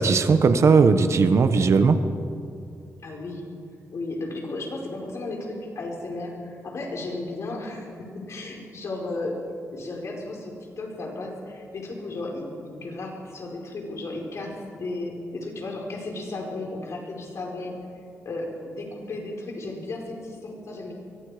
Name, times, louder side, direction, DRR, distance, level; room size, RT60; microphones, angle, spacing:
voice 1, 0.0-2.0, right 4 dB, 60° right, 9 dB, 1.3 m, -18 dB
voice 2, 3.0-3.4 3.9-9.4 9.7-17.7 18.2-20.9, left 2 dB, 60° left, 0 dB, 4.9 m, -34 dB
24.5 x 23.5 x 5.1 m, 2.5 s
wide cardioid pair, 125°, 5 cm